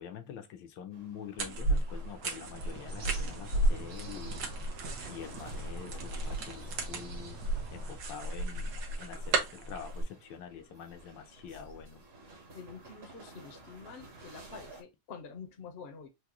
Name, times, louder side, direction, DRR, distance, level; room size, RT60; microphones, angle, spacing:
voice 1, 0.0-4.4 5.1-7.4 7.7-12.0, left 8 dB, 80° left, 1.3 m, -46 dB
sound 1, 0.9-14.8, right 2 dB, 40° right, 1.0 m, -54 dB
sound 2, 1.4-10.0, right 2 dB, 75° right, 1.6 m, -34 dB
sound 3, 2.5-8.0, right 3 dB, 60° right, 1.5 m, -47 dB
voice 2, 12.5-16.1, left 5 dB, 50° left, 0.7 m, -47 dB
4.8 x 2.2 x 2.9 m
omnidirectional pair, 2.0 m